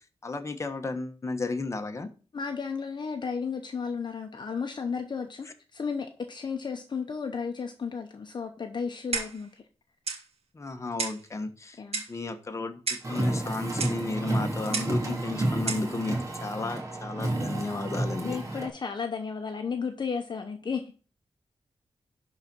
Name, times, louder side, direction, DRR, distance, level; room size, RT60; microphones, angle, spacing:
voice 1, 0.2-2.1 10.5-11.8 12.1-18.4, left 3 dB, 30° left, 1.1 m, -33 dB
voice 2, 2.3-9.6 11.8-12.0 18.2-20.9, left 5 dB, 45° left, 0.8 m, -33 dB
Clock, 9.1-9.5 10.1-10.2 11.0-11.3 11.9-12.2 12.9-13.1 13.8-14.0 14.7-15.0 15.7-15.9, right 4 dB, 75° right, 1.8 m, -32 dB
Car, 13.0-18.7, right 1 dB, 30° right, 2.1 m, -30 dB
11.5 x 4.1 x 6.1 m
wide cardioid pair, 140°, 10 cm